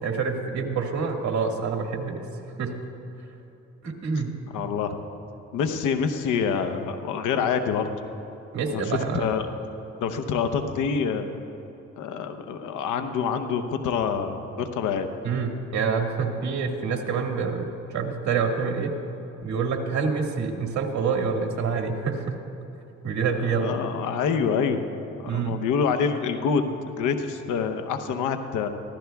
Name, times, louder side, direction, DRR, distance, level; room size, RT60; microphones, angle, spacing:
voice 1, 0.0-2.2 2.6-2.8 3.8-4.3 8.5-9.3 15.2-18.9 19.4-22.4 23.0-23.8 25.3-25.6, right 5 dB, 65° right, 2 dB, 1.8 m, -27 dB
voice 2, 4.5-5.0 5.5-7.9 8.7-9.4 10.0-11.3 12.0-15.1 23.4-24.8 25.2-26.6 27.0-28.7, left 6 dB, 90° left, 8 dB, 0.9 m, -26 dB
23.5 x 15.0 x 2.3 m, 2.9 s
cardioid pair, 90°, 30 cm